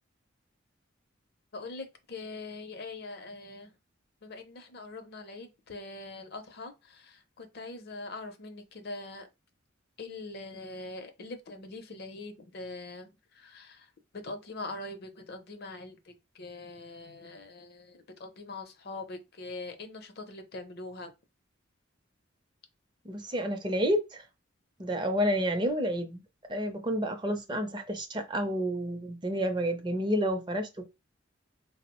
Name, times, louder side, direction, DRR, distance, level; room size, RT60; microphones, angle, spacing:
voice 1, 1.5-3.8 4.2-9.3 10.0-21.1, left 2 dB, 50° left, 0.6 m, -43 dB
voice 2, 23.0-24.2 24.8-26.2 26.5-30.9, equal, 25° right, 0.5 m, -30 dB
3.8 x 2.0 x 2.9 m
head